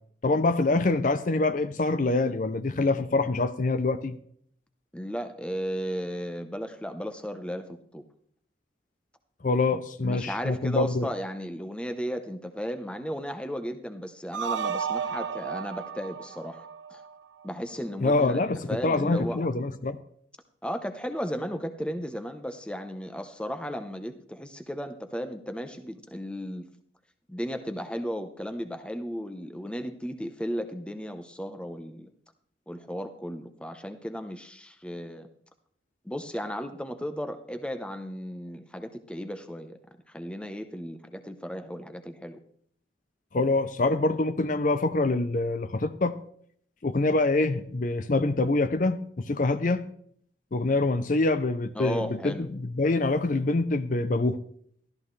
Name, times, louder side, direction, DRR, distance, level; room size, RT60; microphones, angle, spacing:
voice 1, 0.2-4.2 9.4-11.1 18.0-20.0 43.3-46.2 46.8-49.9 50.5-54.4, left 2 dB, 45° left, 11 dB, 0.5 m, -25 dB
voice 2, 4.9-8.0 9.7-17.0 17.4-19.4 20.6-26.7 27.3-32.1 32.7-35.3 36.0-39.8 40.1-42.4 51.8-52.5, equal, 5° left, 8 dB, 0.8 m, -35 dB
sound 1, 14.3-17.5, right 7 dB, 85° right, 0.6 m, -33 dB
14.0 x 13.0 x 3.2 m, 0.64 s
head